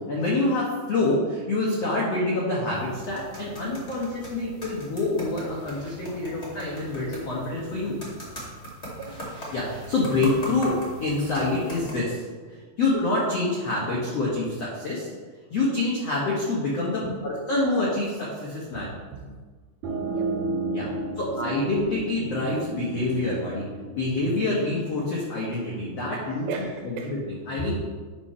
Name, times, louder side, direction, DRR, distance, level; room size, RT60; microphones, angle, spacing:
voice 1, 0.0-7.9 9.5-10.7 11.0-12.2 12.5-15.1 15.5-18.9 20.7-20.8 21.2-23.6 23.9-26.5 26.8-27.8, left 2 dB, 80° left, -5 dB, 1.4 m, -26 dB
sound 1, 2.7-11.9, equal, 30° left, 1.3 m, -40 dB
voice 2, 9.0-9.3 10.0-10.1 17.0-17.1 18.7-19.3 20.1-20.4 20.8-21.0 21.4-21.5 26.5-27.1, right 6 dB, 80° right, 3 dB, 2.7 m, -37 dB
sound 2, 19.8-25.2, right 3 dB, 45° right, 3.1 m, -33 dB
9.9 x 4.4 x 5.7 m, 1.4 s
omnidirectional pair, 5.3 m